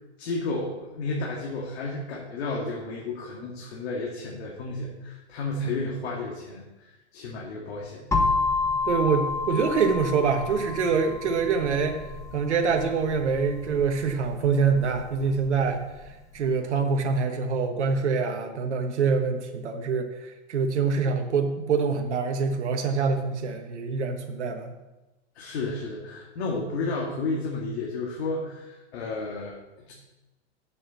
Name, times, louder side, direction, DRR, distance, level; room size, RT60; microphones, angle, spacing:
voice 1, 0.2-8.0 25.4-29.9, left 3 dB, 65° left, -2 dB, 2.1 m, -32 dB
sound 1, 8.1-15.9, left 3 dB, 10° left, 1.0 m, -30 dB
voice 2, 8.9-12.0 12.3-15.8 16.3-20.1 20.5-24.7, right 5 dB, 85° right, 5 dB, 1.2 m, -25 dB
7.2 x 6.8 x 7.0 m, 1.1 s
hypercardioid pair, 120°, 34 cm